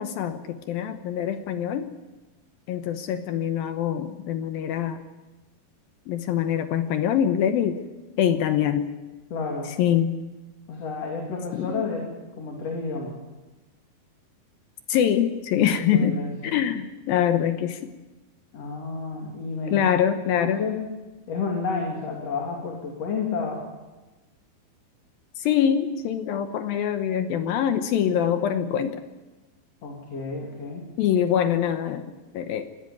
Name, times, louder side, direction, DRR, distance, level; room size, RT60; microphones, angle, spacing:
voice 1, 0.0-1.9 2.7-5.0 6.1-7.8 8.2-8.9 9.8-10.2 11.5-11.8 14.9-16.2 16.5-17.9 19.7-20.6 25.4-29.0 31.0-32.7, left 9 dB, 75° left, 9 dB, 2.6 m, -24 dB
voice 2, 9.3-9.7 10.7-12.1 12.4-13.2 15.9-16.6 18.5-19.9 20.3-20.8 21.3-23.6 29.8-30.8, left 4 dB, 45° left, 0 dB, 3.5 m, -30 dB
18.5 x 15.5 x 9.6 m, 1.1 s
omnidirectional pair, 4.5 m